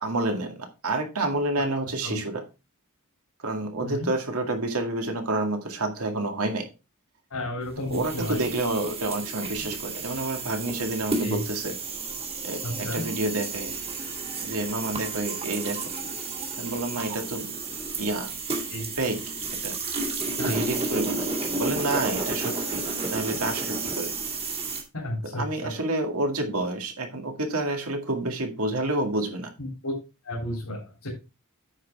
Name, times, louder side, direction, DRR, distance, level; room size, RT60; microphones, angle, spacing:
voice 1, 0.0-2.4 3.4-6.7 7.9-11.7 12.4-13.7 14.4-15.8 16.6-17.5 18.0-18.3 19.0-19.2 19.6-19.8 20.5-21.3 21.6-22.8 23.1-24.1 25.2-29.5, right 2 dB, 75° right, 4 dB, 2.0 m, -29 dB
voice 2, 7.3-8.4 11.2-11.4 12.6-13.0 18.7-18.9 20.4-20.6 24.9-25.7 29.6-29.9 30.3-31.1, left 1 dB, 75° left, -3 dB, 3.3 m, -32 dB
sound 1, 7.9-24.8, right 3 dB, 25° right, 2.0 m, -32 dB
9.0 x 6.5 x 3.6 m, 0.28 s
head